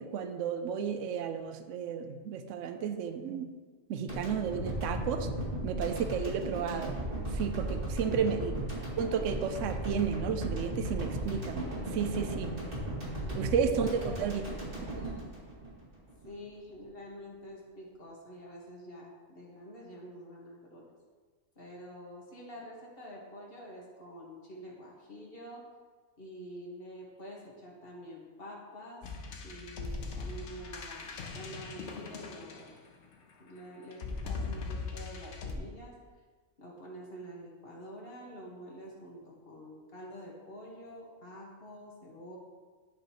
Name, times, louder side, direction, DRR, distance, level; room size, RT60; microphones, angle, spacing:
voice 1, 0.0-3.5 3.9-5.3 5.6-7.0 7.3-8.7 9.0-12.5 13.3-14.4, right 7 dB, 75° right, 8 dB, 0.9 m, -32 dB
sound 1, 4.1-16.3, right 1 dB, 45° right, 2.0 m, -36 dB
voice 2, 8.0-8.3 13.2-14.2 14.9-15.3 16.2-20.8 21.5-25.6 26.2-29.0 29.4-32.8 33.4-35.9 36.6-42.4, equal, 45° left, -3 dB, 1.7 m, -47 dB
sound 2, 29.0-33.1 33.9-35.6, left 4 dB, 65° left, 1.0 m, -40 dB
11.0 x 5.1 x 3.0 m, 1.5 s
omnidirectional pair, 1.4 m